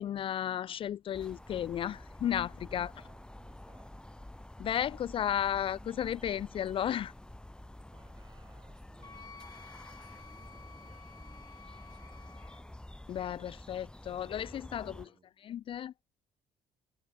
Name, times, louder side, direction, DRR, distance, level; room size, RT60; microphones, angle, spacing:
voice 1, 0.0-2.9 4.6-7.1 13.1-14.9 15.5-16.0, left 10 dB, 50° left, 0.4 m, -34 dB
sound 1, 1.1-15.1, left 1 dB, 5° left, 2.4 m, -49 dB
voice 2, 2.7-4.1 7.9-9.4 9.8-12.6 13.9-14.4 14.7-15.3, right 5 dB, 35° right, 8.0 m, -63 dB
Wind instrument woodwind instrument, 9.0-12.6, left 5 dB, 30° left, 2.8 m, -53 dB
supercardioid pair, 65°, 12 cm